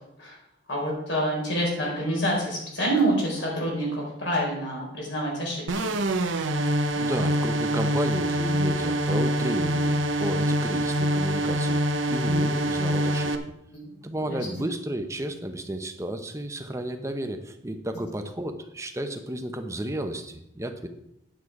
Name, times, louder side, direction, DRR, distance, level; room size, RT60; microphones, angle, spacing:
voice 1, 0.7-6.0 13.7-14.0 14.3-14.4, right 1 dB, 70° left, -3 dB, 4.5 m, -27 dB
sound 1, 5.7-13.4, right 1 dB, 85° right, 0.9 m, -25 dB
voice 2, 6.6-13.3 14.0-20.9, right 1 dB, 15° right, 6 dB, 0.8 m, -32 dB
9.4 x 8.1 x 4.8 m, 0.82 s
head